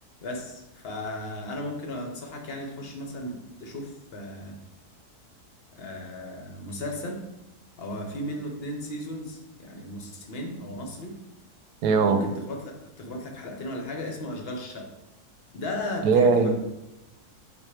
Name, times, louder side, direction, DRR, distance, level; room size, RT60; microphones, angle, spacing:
voice 1, 0.2-4.6 5.7-7.2 7.8-11.2 12.0-14.9 15.5-16.5, left 1 dB, 45° left, 2 dB, 1.0 m, -35 dB
voice 2, 11.8-12.2 16.0-16.5, right 5 dB, 90° right, 8 dB, 1.2 m, -19 dB
7.3 x 2.6 x 5.0 m, 0.91 s
omnidirectional pair, 1.7 m